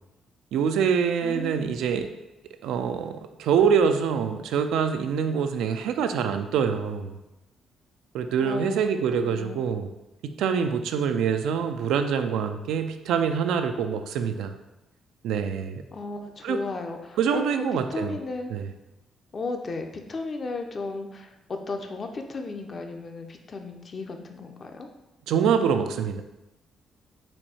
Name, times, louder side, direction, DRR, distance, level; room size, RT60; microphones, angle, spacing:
voice 1, 0.5-2.1 2.6-7.1 8.1-9.9 10.2-14.5 15.2-15.8 16.4-16.6 17.2-18.1 18.5-18.7 25.3-26.2, right 7 dB, 85° right, 7 dB, 0.4 m, -25 dB
voice 2, 1.2-1.8 8.4-8.8 9.2-9.7 15.9-18.5 19.3-24.9, left 3 dB, 40° left, 4 dB, 0.6 m, -35 dB
4.4 x 2.7 x 4.3 m, 0.98 s
cardioid pair, 90°, 0 cm